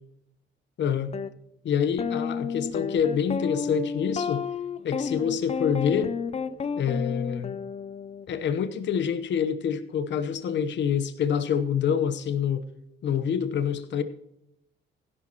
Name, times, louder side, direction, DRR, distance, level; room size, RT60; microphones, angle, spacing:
voice 1, 0.8-1.1 1.6-4.4 4.8-6.2 6.8-7.6 8.3-12.6 13.0-14.0, left 7 dB, 65° left, 11 dB, 1.0 m, -26 dB
sound 1, 1.1-1.3 2.0-8.3, left 6 dB, 30° left, 0.6 m, -31 dB
16.0 x 11.0 x 3.0 m, 0.82 s
cardioid pair, 90°, 20 cm